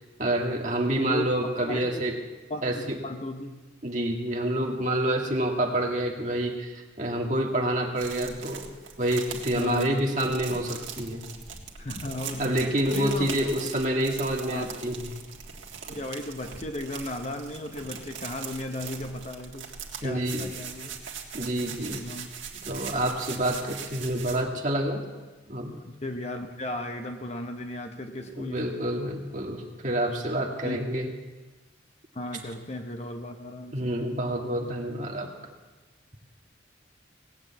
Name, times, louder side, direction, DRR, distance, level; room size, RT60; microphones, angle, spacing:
voice 1, 0.2-2.2 2.6-3.0 3.8-8.7 9.0-11.2 12.4-15.1 20.0-20.5 21.3-22.0 22.6-25.0 25.5-25.9 28.4-31.1 33.7-35.3, right 1 dB, 40° right, 1 dB, 1.9 m, -28 dB
voice 2, 1.0-2.0 2.5-3.6 9.5-10.0 11.8-13.3 13.6-13.7 14.4-14.7 15.8-19.8 20.0-21.0 21.9-22.3 26.0-28.8 30.6-30.8 31.0-31.1 32.2-33.9, left 1 dB, 35° left, 6 dB, 0.9 m, -35 dB
sound 1, 8.0-24.4, right 7 dB, 80° right, 1.9 m, -40 dB
18.0 x 8.2 x 8.2 m, 1.2 s
head